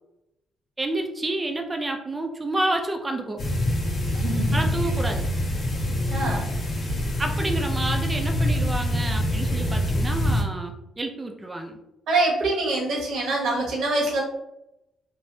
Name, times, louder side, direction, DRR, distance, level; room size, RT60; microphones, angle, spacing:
voice 1, 0.8-3.4 4.5-5.2 7.2-11.8, right 2 dB, 20° right, 4 dB, 0.4 m, -29 dB
sound 1, 3.4-10.4, left 1 dB, 45° left, 1.2 m, -25 dB
voice 2, 4.1-4.6 6.1-6.5 12.1-14.2, right 2 dB, 75° right, -2 dB, 1.0 m, -25 dB
3.1 x 2.1 x 2.7 m, 0.89 s
cardioid pair, 90°, 0 cm